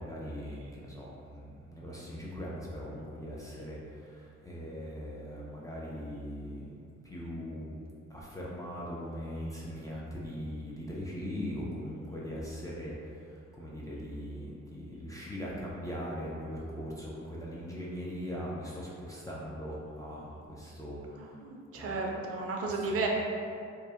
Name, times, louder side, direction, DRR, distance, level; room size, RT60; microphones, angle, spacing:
voice 1, 0.0-6.8 7.0-7.7 8.1-12.9 13.5-21.0 21.7-22.0 22.7-23.0, equal, 10° left, -6 dB, 0.3 m, -40 dB
voice 2, 21.2-23.1, right 3 dB, 55° right, 0 dB, 0.4 m, -34 dB
2.7 x 2.0 x 2.3 m, 2.4 s
cardioid pair, 105°, 29 cm